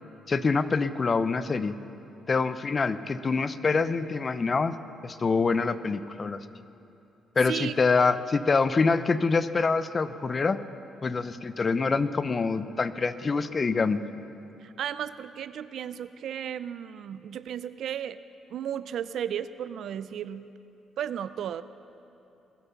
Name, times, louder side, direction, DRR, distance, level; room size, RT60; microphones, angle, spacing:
voice 1, 0.3-1.8 2.3-4.8 5.0-6.5 7.4-10.6 11.0-14.0, left 4 dB, 35° left, 13 dB, 0.6 m, -25 dB
voice 2, 7.5-8.0 14.6-18.2 18.5-20.5 21.0-21.6, right 9 dB, 70° right, 15 dB, 0.4 m, -34 dB
21.0 x 8.2 x 5.8 m, 2.8 s
cardioid pair, 90°, 0 cm